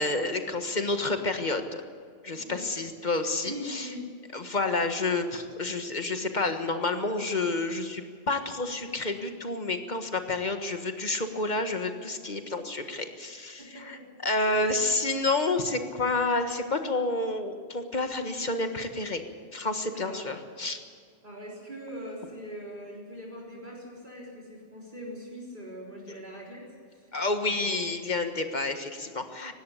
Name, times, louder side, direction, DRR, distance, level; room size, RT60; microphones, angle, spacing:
voice 1, 0.0-1.8 2.2-3.9 4.3-19.2 19.5-20.8 26.1-26.2 27.1-29.5, left 2 dB, 45° left, 7 dB, 1.7 m, -29 dB
voice 2, 2.3-2.7 3.4-4.1 13.6-14.0 14.5-14.7 19.9-20.3 21.2-27.6, equal, 50° right, -3 dB, 3.9 m, -42 dB
19.0 x 16.5 x 8.4 m, 2.1 s
omnidirectional pair, 1.1 m